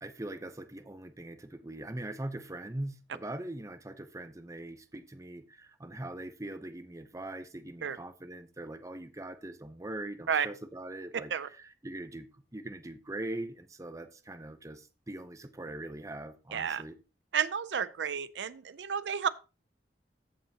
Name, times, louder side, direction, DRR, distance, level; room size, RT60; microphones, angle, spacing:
voice 1, 0.0-16.9, right 1 dB, 20° right, 0.7 m, -42 dB
voice 2, 16.5-16.8 17.3-19.3, right 7 dB, 90° right, 0.5 m, -31 dB
14.5 x 5.6 x 2.8 m
head